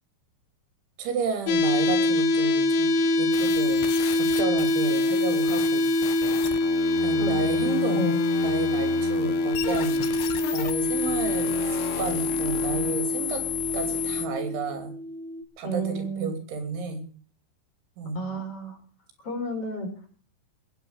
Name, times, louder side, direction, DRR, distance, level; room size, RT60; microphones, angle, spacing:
voice 1, 1.0-2.9 3.2-3.9 4.1-5.9 7.0-8.1 8.4-10.1 10.5-11.5 12.0-13.4 13.7-14.9 15.6-17.0 18.0-18.3, right 4 dB, 85° right, 7 dB, 5.4 m, -32 dB
sound 1, 1.5-15.4, left 2 dB, 85° left, 3.6 m, -25 dB
sound 2, 3.3-14.3, left 10 dB, 65° left, 3.3 m, -33 dB
voice 2, 15.6-16.3 18.1-18.8 19.2-20.1, right 2 dB, 30° left, 3 dB, 4.8 m, -31 dB
19.5 x 9.1 x 7.3 m, 0.43 s
omnidirectional pair, 5.3 m